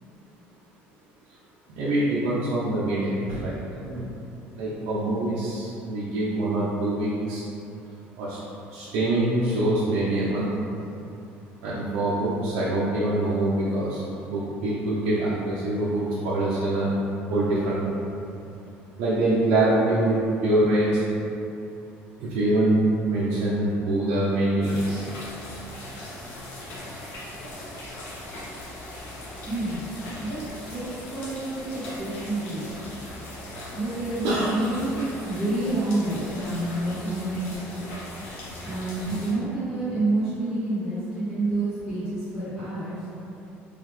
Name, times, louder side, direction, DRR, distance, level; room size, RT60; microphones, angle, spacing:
voice 1, 1.8-3.6 3.8-4.0 4.5-7.4 8.2-8.4 8.7-10.5 11.6-14.0 14.3-16.9 17.3-18.1 19.0-21.0 22.2-22.8 23.1-25.1 34.2-34.5, right 1 dB, 90° right, -8 dB, 0.7 m, -24 dB
sound 1, 24.6-39.3, left 1 dB, 60° left, 1.0 m, -39 dB
voice 2, 29.5-29.9 30.2-32.9 33.7-37.6 38.6-43.0, right 2 dB, ahead, -17 dB, 1.3 m, -28 dB
3.9 x 3.2 x 3.1 m, 2.8 s
cardioid pair, 165°, 4 cm